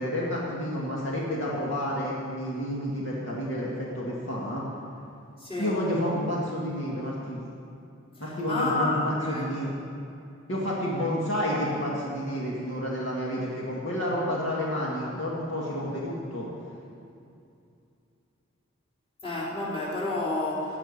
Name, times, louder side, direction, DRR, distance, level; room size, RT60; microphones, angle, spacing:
voice 1, 0.0-4.6 5.6-7.4 8.2-9.7 10.5-16.5, equal, 60° left, -5 dB, 2.0 m, -30 dB
voice 2, 5.4-5.7 8.1-9.5 19.2-20.8, left 2 dB, 25° left, -8 dB, 3.7 m, -30 dB
17.0 x 6.0 x 9.9 m, 2.6 s
head